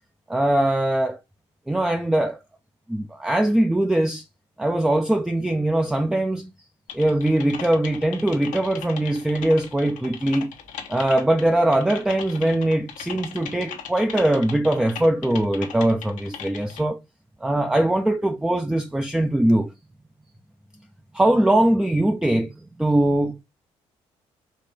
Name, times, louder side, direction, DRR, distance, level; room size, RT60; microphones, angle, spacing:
voice 1, 0.3-1.2 1.7-2.4 2.9-4.2 4.6-6.5 6.9-10.5 10.9-17.0 17.4-19.7 21.1-22.5 22.8-23.4, right 1 dB, 5° right, 0.4 m, -21 dB
Typing, 6.9-16.8, left 8 dB, 75° left, 0.8 m, -38 dB
4.2 x 2.6 x 3.3 m
supercardioid pair, 65°, 13 cm